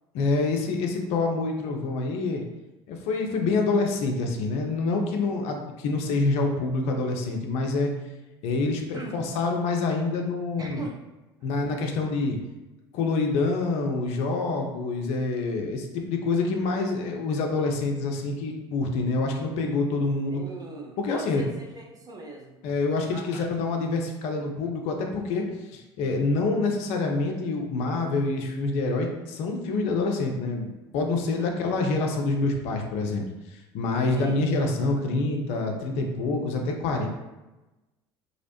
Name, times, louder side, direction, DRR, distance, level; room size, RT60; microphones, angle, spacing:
voice 1, 0.1-2.4 2.9-7.9 8.4-10.8 11.4-12.4 12.9-20.4 21.0-21.5 22.6-30.7 30.9-37.1, left 3 dB, 50° left, 2 dB, 0.4 m, -26 dB
voice 2, 10.6-11.0 11.4-11.7 20.3-22.6 23.1-23.4 31.3-31.8 34.1-34.8, right 3 dB, 25° right, 0 dB, 0.6 m, -40 dB
2.6 x 2.0 x 2.7 m, 1.0 s
figure-of-eight pair, 65°, 14 cm